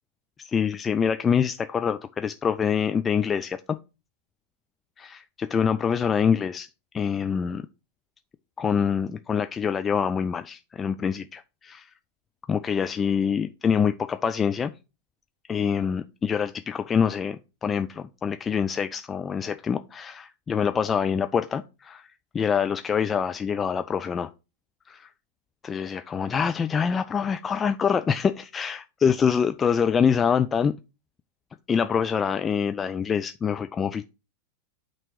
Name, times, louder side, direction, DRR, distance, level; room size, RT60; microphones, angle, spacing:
voice 1, 0.4-3.8 5.0-6.7 6.9-7.6 8.6-11.9 12.5-14.7 15.5-22.1 22.3-24.3 24.9-25.1 25.6-30.8 31.7-34.0, left 7 dB, 20° left, 0.3 m, -25 dB
8.8 x 3.0 x 4.5 m
figure-of-eight pair, 90°, 0 cm